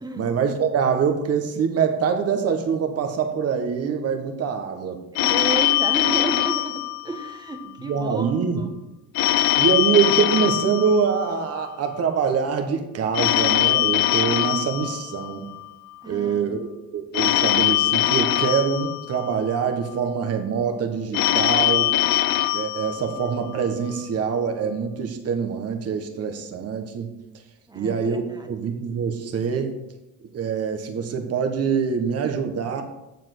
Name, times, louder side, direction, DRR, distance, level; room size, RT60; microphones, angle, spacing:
voice 1, 0.2-5.0 7.8-8.6 9.6-15.5 16.1-21.9 22.5-27.1 27.7-29.7 30.3-32.8, right 6 dB, 40° right, 5 dB, 1.4 m, -24 dB
Telephone, 5.1-7.6 9.1-11.6 13.1-15.6 17.1-19.6 21.1-23.6, left 14 dB, 60° left, 0.7 m, -22 dB
voice 2, 5.1-8.7 16.0-16.7 23.0-23.1 27.7-28.5, right 2 dB, 10° right, 5 dB, 1.2 m, -32 dB
7.6 x 7.3 x 6.1 m, 0.96 s
cardioid pair, 125°, 38 cm